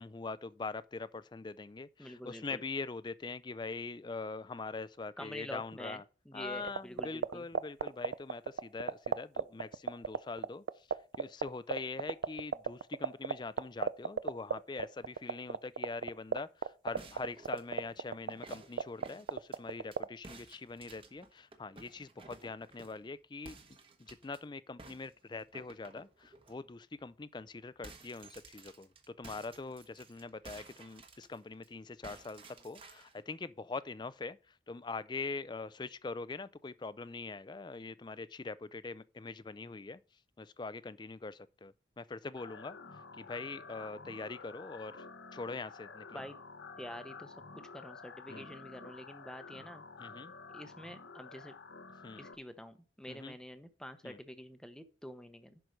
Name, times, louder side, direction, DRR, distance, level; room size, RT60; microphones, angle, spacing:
voice 1, 0.0-6.0 6.3-23.6 24.0-40.0 40.4-42.8 43.1-45.1 45.3-46.2 48.3-48.5 50.0-50.3 52.0-52.3 53.1-53.3 54.0-54.2, left 3 dB, 25° left, 0.4 m, -43 dB
voice 2, 2.0-2.6 5.2-6.0 6.3-7.5 46.1-46.4 46.8-47.3 47.7-49.8 50.5-51.5 52.2-55.6, equal, 5° left, 0.7 m, -47 dB
sound 1, 6.7-20.0, right 6 dB, 70° right, 0.4 m, -31 dB
sound 2, 17.0-20.0 20.2-23.1 23.4-24.4 24.8-26.5 27.0-27.1 27.4-31.7 32.0-33.2, right 3 dB, 30° right, 1.1 m, -55 dB
sound 3, 42.4-52.4, left 4 dB, 70° left, 0.9 m, -50 dB
10.5 x 4.6 x 5.2 m
head